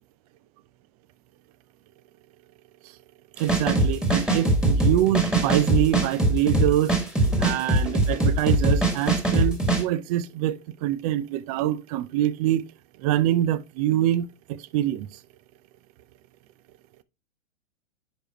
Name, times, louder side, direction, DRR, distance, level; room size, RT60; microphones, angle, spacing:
sound 1, 3.4-9.8, right 1 dB, ahead, 1.8 m, -22 dB
voice 1, 3.4-6.9 7.4-12.6 13.0-14.3 14.7-15.1, right 13 dB, 30° right, 0.6 m, -25 dB
9.9 x 4.9 x 3.0 m
hypercardioid pair, 130°, 37 cm